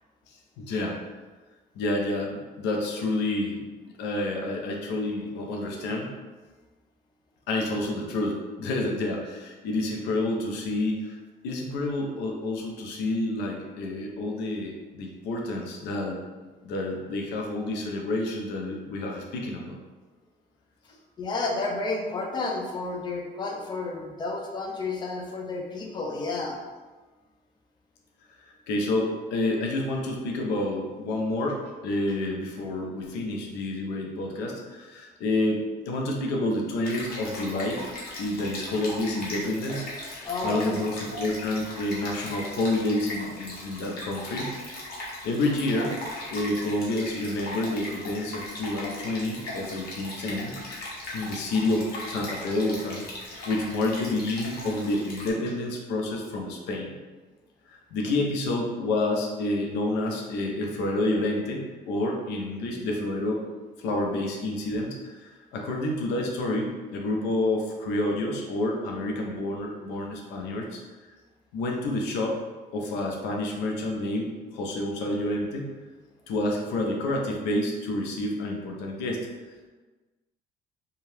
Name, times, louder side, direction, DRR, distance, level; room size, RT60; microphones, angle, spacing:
voice 1, 0.6-1.0 1.7-3.6 4.0-6.1 7.5-11.2 11.4-16.2 16.6-19.8 28.4-37.8 38.2-40.0 40.4-44.5 45.0-45.9 46.3-50.9 51.1-53.0 53.5-56.9 57.7-63.4 63.8-71.1 71.5-72.4 72.7-75.7 76.3-79.3, left 2 dB, 90° left, 0 dB, 0.6 m, -29 dB
voice 2, 21.2-26.6 40.3-40.6, left 3 dB, 25° left, 1 dB, 0.5 m, -31 dB
Stream, 36.8-55.3, left 1 dB, 65° left, 0.9 m, -38 dB
2.7 x 2.3 x 3.2 m, 1.3 s
cardioid pair, 110°, 17 cm